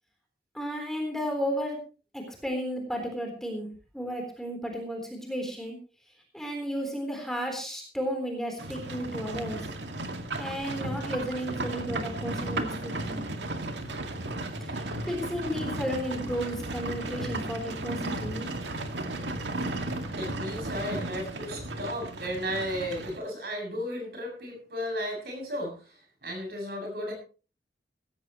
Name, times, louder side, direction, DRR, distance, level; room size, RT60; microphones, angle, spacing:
voice 1, 0.5-1.8 2.1-3.7 3.9-5.8 6.3-9.7 10.4-13.2 14.6-18.5, equal, ahead, 2 dB, 3.8 m, -33 dB
Livestock farm animals working animals, 8.6-23.2, right 2 dB, 90° right, 2.1 m, -34 dB
voice 2, 20.1-25.7 26.2-27.1, equal, 60° right, 2 dB, 7.4 m, -34 dB
17.5 x 15.5 x 3.1 m, 0.36 s
head